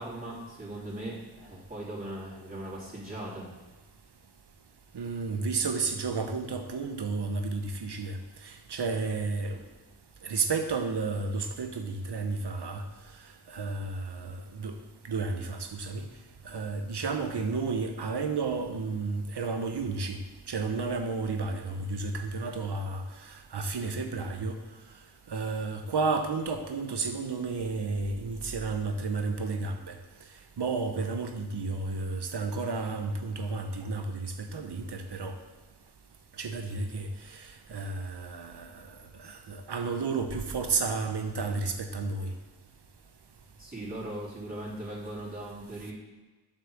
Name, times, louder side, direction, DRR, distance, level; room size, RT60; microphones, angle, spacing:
voice 1, 0.0-3.5 43.6-45.9, right 1 dB, 20° right, -8 dB, 3.4 m, -39 dB
voice 2, 4.9-8.2 8.4-9.6 10.2-12.8 13.5-14.8 15.1-16.0 16.4-20.2 20.5-24.6 25.3-30.0 30.6-35.4 36.4-38.8 39.2-42.3, right 4 dB, 85° right, 5 dB, 1.0 m, -32 dB
7.8 x 6.2 x 6.6 m, 1.2 s
wide cardioid pair, 55°, 39 cm